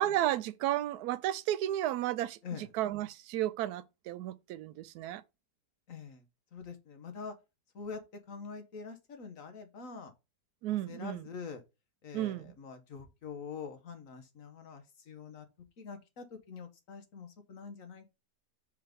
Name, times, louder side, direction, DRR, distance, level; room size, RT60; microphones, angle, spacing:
voice 1, 0.0-5.2 10.6-11.3 12.1-12.5, right 13 dB, 75° right, 1.1 m, -33 dB
voice 2, 5.9-6.2 6.5-7.3 7.7-8.0 8.3-10.1 10.9-11.6 12.0-15.4 15.8-18.1, left 5 dB, 55° left, 1.4 m, -45 dB
5.6 x 3.7 x 5.1 m
omnidirectional pair, 1.8 m